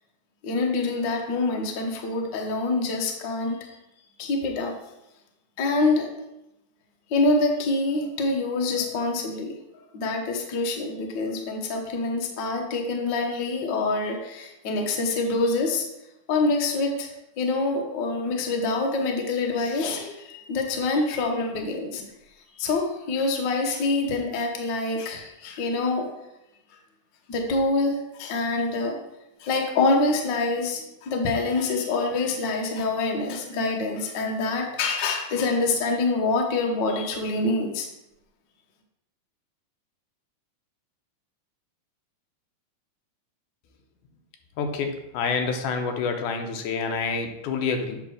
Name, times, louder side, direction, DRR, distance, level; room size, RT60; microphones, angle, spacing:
voice 1, 0.4-3.7 4.2-4.7 5.6-6.1 7.1-9.6 9.9-15.8 16.3-17.1 17.4-22.0 22.5-26.1 27.3-29.0 29.4-37.9, left 3 dB, 60° left, 1 dB, 1.2 m, -26 dB
voice 2, 44.6-48.0, left 5 dB, 85° left, 4 dB, 2.4 m, -28 dB
8.3 x 3.5 x 6.2 m, 0.88 s
omnidirectional pair, 3.5 m